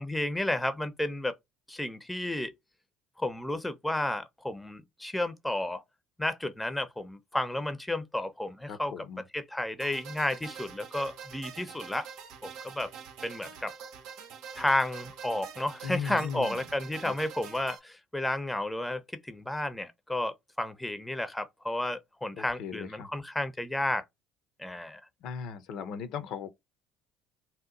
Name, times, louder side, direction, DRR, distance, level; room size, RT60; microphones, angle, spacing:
voice 1, 0.0-1.3 1.7-2.5 3.2-5.8 6.2-9.0 9.3-12.1 12.4-12.9 13.2-13.7 14.5-24.0 24.6-25.0, left 1 dB, 10° left, 0.6 m, -32 dB
voice 2, 8.7-9.2 15.8-16.7 17.0-17.1 22.3-23.1 25.2-26.5, left 6 dB, 65° left, 0.5 m, -38 dB
sound 1, 9.8-17.8, right 7 dB, 70° right, 0.6 m, -45 dB
2.8 x 2.1 x 3.7 m
hypercardioid pair, 70°, 0 cm